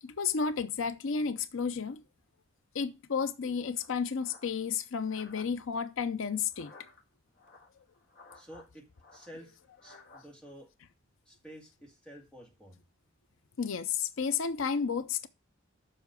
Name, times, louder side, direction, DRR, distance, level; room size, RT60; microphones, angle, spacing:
voice 1, 0.0-2.0 2.7-6.7 13.6-15.3, left 6 dB, 70° left, 0.5 m, -32 dB
sound 1, 3.8-5.5 6.4-7.0 7.4-8.7 9.0-10.3, left 3 dB, 45° left, 1.7 m, -55 dB
voice 2, 8.3-8.8 9.1-10.7 11.3-12.8, equal, 5° left, 2.1 m, -51 dB
7.0 x 5.7 x 6.6 m
head